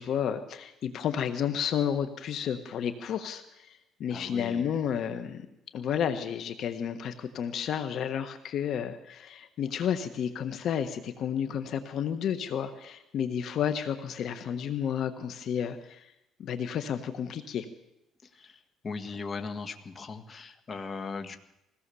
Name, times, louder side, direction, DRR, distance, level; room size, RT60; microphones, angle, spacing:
voice 1, 0.0-5.5 5.7-16.1 16.4-17.6, left 8 dB, 55° left, 9 dB, 1.3 m, -31 dB
voice 2, 4.1-4.7 18.3-21.4, left 4 dB, 30° left, 7 dB, 1.7 m, -38 dB
22.0 x 17.0 x 7.0 m, 0.88 s
cardioid pair, 120°, 0 cm